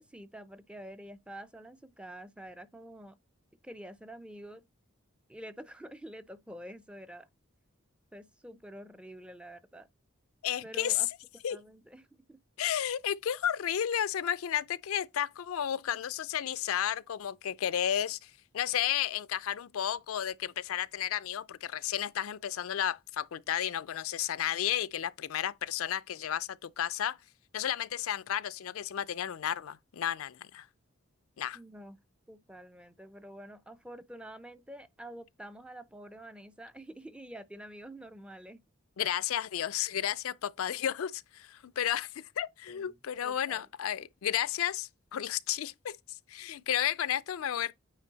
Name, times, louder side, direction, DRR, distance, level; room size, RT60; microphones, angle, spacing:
voice 1, 0.0-3.2 3.6-4.6 5.3-7.3 8.1-9.9 10.6-11.1 11.3-12.4 31.5-32.0 32.3-38.6 42.7-43.0 43.2-43.7, right 1 dB, 5° right, 0.4 m, -47 dB
voice 2, 10.4-11.0 11.4-11.6 12.6-27.2 27.5-30.7 31.4-31.6 39.0-46.0 46.3-47.7, left 10 dB, 80° left, 0.4 m, -32 dB
9.0 x 3.3 x 3.9 m
head